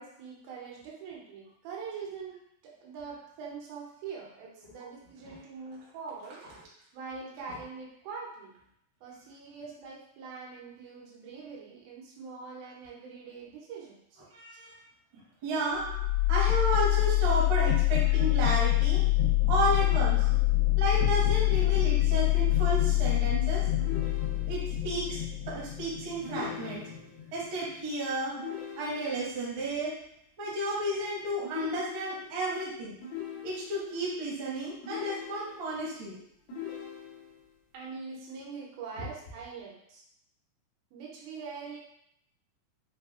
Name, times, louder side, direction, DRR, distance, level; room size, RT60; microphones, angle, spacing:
voice 1, 0.0-6.4 6.9-8.5 9.0-14.2 15.7-16.0 16.9-17.0 17.6-17.7 20.2-20.3 28.3-28.5 37.7-40.0 40.9-41.8, right 5 dB, 85° right, -3 dB, 2.7 m, -43 dB
voice 2, 14.3-14.8 15.4-15.8 16.3-19.0 19.5-20.3 20.8-23.9 24.5-25.2 25.4-26.9 27.3-28.3 28.8-29.9 30.4-32.9 33.4-36.2 39.0-39.1, right 1 dB, 60° right, -6 dB, 1.3 m, -32 dB
sound 1, 15.8-27.7, left 17 dB, 65° left, 1.6 m, -26 dB
sound 2, 23.8-24.8 26.2-27.3 28.4-29.4 31.4-32.4 33.0-34.0 34.8-35.9 36.5-37.5, left 8 dB, 85° left, 1.5 m, -42 dB
5.6 x 2.4 x 2.4 m, 0.72 s
omnidirectional pair, 4.1 m